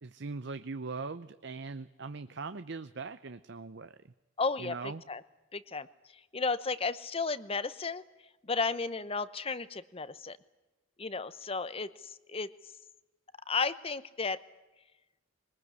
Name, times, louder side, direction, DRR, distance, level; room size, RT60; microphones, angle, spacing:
voice 1, 0.0-4.1 4.6-5.0, right 4 dB, 60° right, 12 dB, 0.7 m, -41 dB
voice 2, 4.4-5.2 5.5-5.9 6.3-8.0 8.4-10.4 11.0-12.5 13.5-14.4, left 4 dB, 30° left, 15 dB, 0.9 m, -33 dB
22.5 x 20.0 x 9.6 m, 1.1 s
head